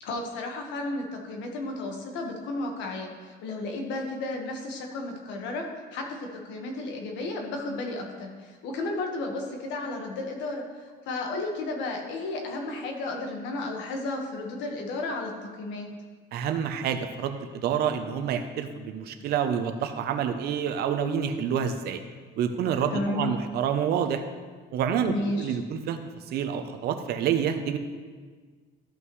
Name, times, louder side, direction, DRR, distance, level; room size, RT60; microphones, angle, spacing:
voice 1, 0.0-5.6 5.9-10.6 11.1-15.9 22.9-23.4 25.0-25.6, left 2 dB, 75° left, 2 dB, 1.5 m, -33 dB
voice 2, 16.3-22.0 22.4-24.2 24.7-26.0 26.3-27.8, right 8 dB, 55° right, 8 dB, 0.7 m, -28 dB
13.0 x 5.6 x 3.2 m, 1.5 s
cardioid pair, 155°, 19 cm